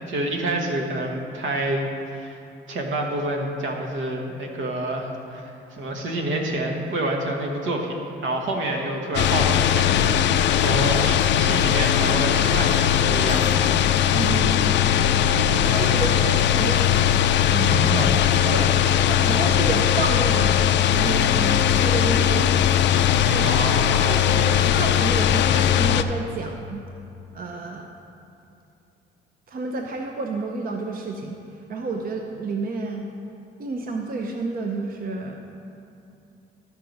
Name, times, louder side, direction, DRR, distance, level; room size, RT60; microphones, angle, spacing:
voice 1, 0.0-2.4 2.7-7.9 8.2-13.7 14.0-14.2 17.6-18.5 23.4-24.1, right 1 dB, 75° right, 1 dB, 1.3 m, -28 dB
sound 1, 9.1-26.0, left 10 dB, 65° left, 0.4 m, -19 dB
voice 2, 14.1-14.8 15.3-16.9 17.5-17.9 18.5-18.8 19.0-22.8 23.2-23.5 24.1-26.8 27.3-27.9 29.5-31.4 31.7-33.1 33.6-35.4, right 3 dB, 45° right, 2 dB, 0.7 m, -30 dB
12.5 x 4.7 x 5.3 m, 2.7 s
cardioid pair, 90°, 20 cm